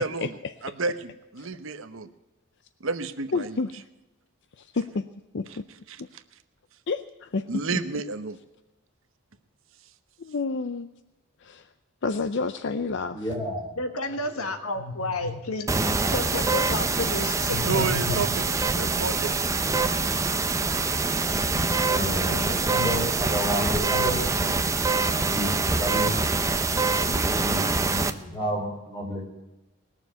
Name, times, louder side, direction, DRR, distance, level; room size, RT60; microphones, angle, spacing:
voice 1, 0.0-2.1 2.8-3.6 5.5-5.6 5.9-6.2 7.5-8.4 17.6-19.3, right 4 dB, 65° right, 11 dB, 0.9 m, -31 dB
voice 2, 3.3-3.7 4.6-5.1 5.3-5.6 6.9-7.5 10.3-10.9 11.4-11.6 12.0-13.3, left 4 dB, 55° left, 11 dB, 0.5 m, -29 dB
voice 3, 13.1-13.7 14.8-14.9 15.2-15.3 17.5-18.1 21.8-26.1 26.9-29.2, equal, 20° left, -1 dB, 4.6 m, -31 dB
voice 4, 13.8-17.6, left 2 dB, 85° left, 7 dB, 1.6 m, -31 dB
sound 1, 15.7-28.1, right 3 dB, 15° right, 0.6 m, -25 dB
19.5 x 7.1 x 9.3 m, 1.0 s
head